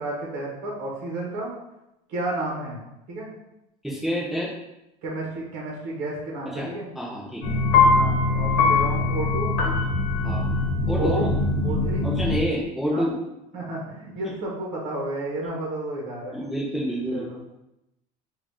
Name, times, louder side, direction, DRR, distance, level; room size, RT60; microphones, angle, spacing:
voice 1, 0.0-1.5 2.1-2.8 3.1-3.3 5.0-6.9 7.9-9.5 11.0-11.3 11.6-12.1 12.9-13.1 13.5-16.3 17.1-17.4, right 2 dB, 50° right, -3 dB, 1.0 m, -31 dB
voice 2, 3.8-4.5 6.5-7.4 10.2-10.5 10.9-11.2 12.0-13.1 16.3-17.3, equal, ahead, -6 dB, 0.5 m, -28 dB
sound 1, 7.4-12.4, left 3 dB, 85° left, 0.9 m, -22 dB
3.8 x 2.5 x 3.3 m, 0.89 s
cardioid pair, 175°, 17 cm